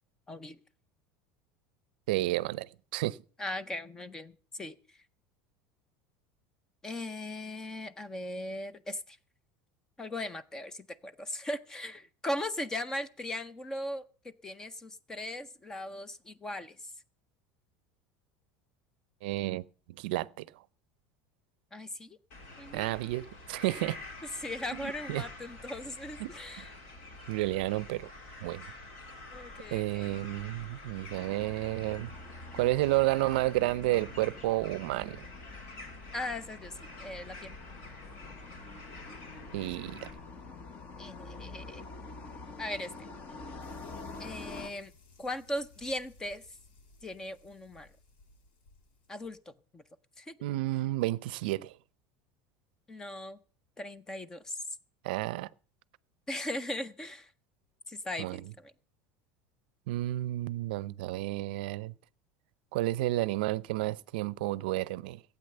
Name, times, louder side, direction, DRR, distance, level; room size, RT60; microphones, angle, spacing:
voice 1, 0.3-0.6 3.4-4.8 6.8-9.2 10.0-14.0 14.4-16.8 21.7-22.2 22.6-22.9 24.4-26.7 29.3-30.2 36.1-37.5 41.0-41.8 42.6-42.9 43.3-43.4 44.2-44.9 45.2-46.4 47.0-47.9 49.1-49.8 50.2-50.3 52.9-53.4 53.8-54.6 56.3-57.3 57.9-58.4, left 1 dB, 10° left, 0.5 m, -38 dB
voice 2, 2.1-3.2 19.2-19.6 19.9-20.5 22.7-24.0 24.7-25.2 26.2-26.7 27.3-28.1 28.4-28.6 29.7-32.1 32.5-35.3 39.5-40.1 50.4-51.8 55.0-55.5 58.2-58.4 59.9-61.9 62.7-65.2, right 17 dB, 80° right, 0.5 m, -31 dB
sound 1, 22.3-40.1, left 2 dB, 55° left, 3.7 m, -48 dB
sound 2, 31.1-44.7, left 3 dB, 25° left, 1.0 m, -47 dB
sound 3, 43.6-49.4, left 3 dB, 80° left, 2.6 m, -60 dB
15.5 x 8.5 x 6.7 m
cardioid pair, 175°, 5 cm